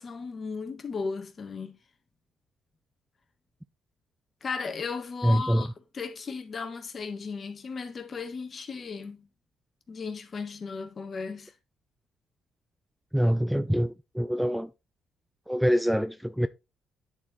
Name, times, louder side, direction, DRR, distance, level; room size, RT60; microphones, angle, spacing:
voice 1, 0.0-1.8 4.4-9.3 9.9-11.5, left 5 dB, 40° left, 1.5 m, -36 dB
voice 2, 5.2-5.7 13.1-14.7 15.5-16.5, equal, 5° right, 0.4 m, -25 dB
9.9 x 4.5 x 3.9 m
cardioid pair, 90°, 0 cm